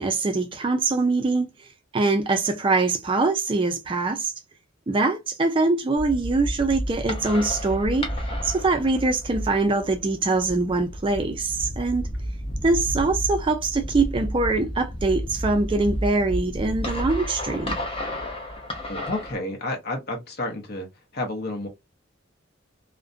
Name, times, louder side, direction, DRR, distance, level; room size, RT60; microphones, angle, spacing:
voice 1, 0.0-1.7 1.9-4.3 4.9-8.1 8.4-12.1 12.6-17.8, right 3 dB, 25° right, 0.4 m, -23 dB
sound 1, 6.0-19.4, equal, 25° left, 0.7 m, -31 dB
voice 2, 18.9-20.9 21.1-21.7, left 2 dB, 50° left, 0.8 m, -30 dB
2.4 x 2.1 x 2.5 m
head